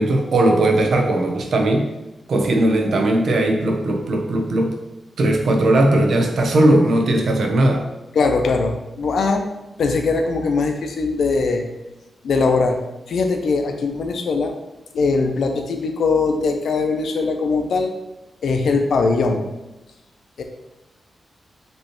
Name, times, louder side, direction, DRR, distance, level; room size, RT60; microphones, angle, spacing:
voice 1, 0.0-1.9 2.3-4.8 5.2-7.8, right 1 dB, 75° right, 2 dB, 0.8 m, -18 dB
voice 2, 8.1-9.4 9.8-11.6 12.2-12.8 13.1-14.5 14.9-17.9 18.4-19.4 20.4-20.5, left 4 dB, 80° left, 4 dB, 0.6 m, -20 dB
5.3 x 3.1 x 3.0 m, 1.0 s
cardioid pair, 85°, 0 cm